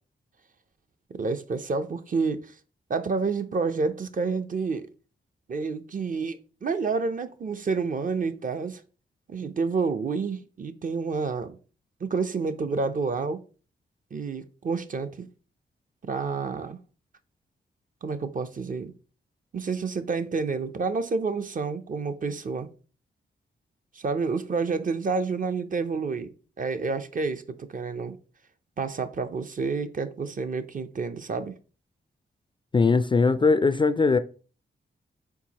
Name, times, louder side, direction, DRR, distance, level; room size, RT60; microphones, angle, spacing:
voice 1, 1.1-2.5 2.9-4.9 5.5-8.8 9.3-11.6 12.0-13.4 14.1-15.3 16.1-16.8 18.0-18.9 19.5-22.7 23.9-26.3 26.6-28.2 28.8-31.5, right 4 dB, 45° right, 0.5 m, -29 dB
voice 2, 32.7-34.2, left 4 dB, 25° left, 0.3 m, -20 dB
4.6 x 3.8 x 2.9 m
cardioid pair, 60°, 20 cm